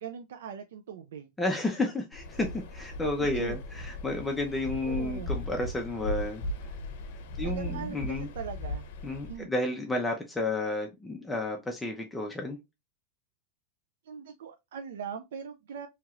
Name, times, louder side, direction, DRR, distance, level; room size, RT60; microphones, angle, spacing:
voice 1, 0.0-1.3 3.2-3.6 4.8-5.3 7.4-8.9 9.3-9.5 14.0-15.9, right 7 dB, 80° right, 0.3 m, -40 dB
voice 2, 1.4-6.4 7.4-8.3 9.0-12.6, left 2 dB, 5° left, 0.4 m, -31 dB
Waves surf, 2.1-9.4, left 1 dB, 60° left, 0.6 m, -37 dB
3.0 x 2.8 x 2.3 m
supercardioid pair, 160°, 0 cm